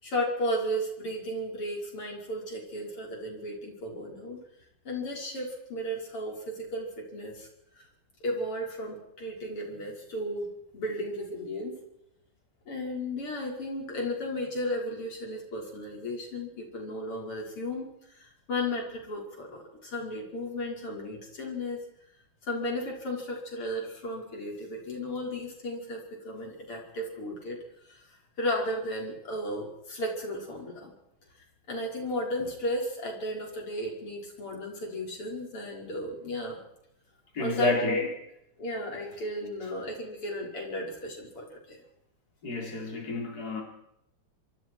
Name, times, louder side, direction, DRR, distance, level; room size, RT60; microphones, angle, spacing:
voice 1, 0.0-4.4 4.8-7.5 8.2-10.5 10.7-11.8 12.7-21.8 22.4-27.6 27.9-28.0 28.4-30.9 31.7-36.6 37.4-38.1 38.6-41.8, left 1 dB, 80° left, 0 dB, 6.4 m, -34 dB
voice 2, 37.3-38.1 42.4-43.6, left 2 dB, 45° left, 0 dB, 5.0 m, -30 dB
27.0 x 25.5 x 4.8 m, 0.78 s
omnidirectional pair, 2.4 m